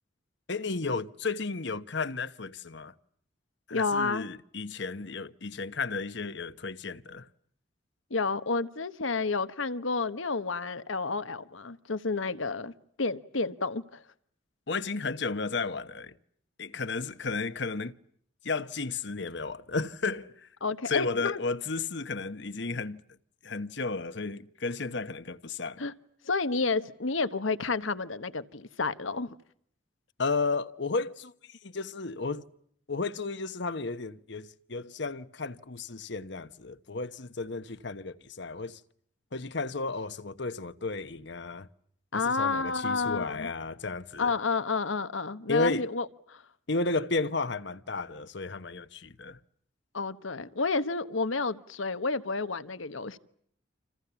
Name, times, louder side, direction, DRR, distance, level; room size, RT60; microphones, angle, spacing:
voice 1, 0.5-2.9 3.7-7.3 14.7-16.2 16.6-17.9 18.4-20.5 20.9-23.0 23.4-25.8 30.2-32.4 32.9-38.8 39.3-41.7 42.1-44.3 45.5-45.9 46.7-49.4, left 3 dB, 60° left, 1.1 m, -33 dB
voice 2, 3.7-4.2 8.1-12.7 13.0-14.0 20.6-21.4 25.8-25.9 26.2-29.3 42.1-43.5 44.2-46.4 49.9-53.2, left 4 dB, 80° left, 1.3 m, -30 dB
28.5 x 27.5 x 7.1 m
head